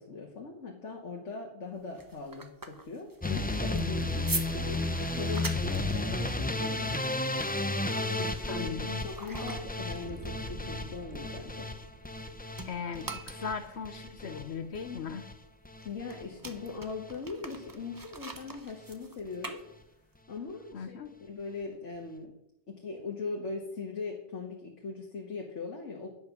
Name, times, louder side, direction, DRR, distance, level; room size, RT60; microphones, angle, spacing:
voice 1, 0.0-7.1 8.2-8.7 9.0-11.7 15.9-19.6 20.3-22.3 22.7-26.1, left 4 dB, 80° left, 0 dB, 1.7 m, -40 dB
sound 1, 1.7-12.2 12.5-20.2, right 3 dB, 20° right, 0.8 m, -44 dB
sound 2, 3.2-15.3 15.6-16.2 16.5-17.1 17.5-17.7 18.0-18.1 18.4-18.5, left 2 dB, 10° left, 0.4 m, -33 dB
voice 2, 8.5-9.0 12.6-15.2 20.7-21.1, left 6 dB, 65° left, 10 dB, 1.0 m, -38 dB
sound 3, 10.0-12.6, right 1 dB, 60° right, 5.2 m, -46 dB
10.5 x 7.5 x 5.9 m, 0.79 s
omnidirectional pair, 1.2 m